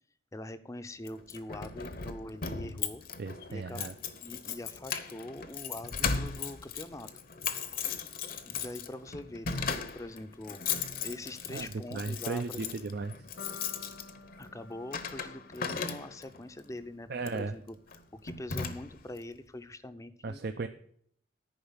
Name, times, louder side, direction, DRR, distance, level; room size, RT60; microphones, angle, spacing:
voice 1, 0.3-3.0 3.5-3.9 4.2-7.1 8.4-10.6 11.0-13.0 14.4-17.8 18.1-20.4, left 1 dB, 15° left, 12 dB, 0.6 m, -43 dB
Keys jangling, 1.1-16.4 17.2-17.4 17.9-18.0 18.3-19.2, left 6 dB, 50° left, 0.8 m, -37 dB
voice 2, 3.2-3.9 11.5-13.1 17.1-17.5 20.2-20.7, right 3 dB, 55° right, 8 dB, 0.5 m, -36 dB
sound 1, 13.4-17.5, left 3 dB, 85° left, 1.5 m, -52 dB
10.5 x 4.9 x 8.0 m, 0.64 s
head